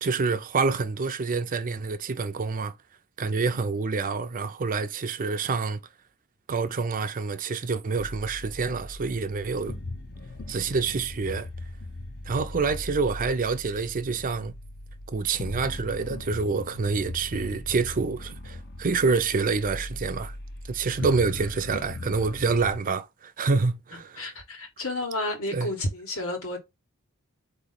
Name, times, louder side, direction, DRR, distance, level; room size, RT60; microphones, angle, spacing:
voice 1, 0.0-2.7 3.2-5.8 6.5-9.8 10.5-11.5 12.3-14.5 15.1-20.4 20.7-24.2 25.5-25.7, right 4 dB, 40° right, 0.5 m, -27 dB
sound 1, 8.0-22.8, left 2 dB, 50° left, 0.7 m, -39 dB
voice 2, 24.2-26.6, left 1 dB, 65° left, 1.5 m, -31 dB
4.3 x 2.9 x 3.9 m
head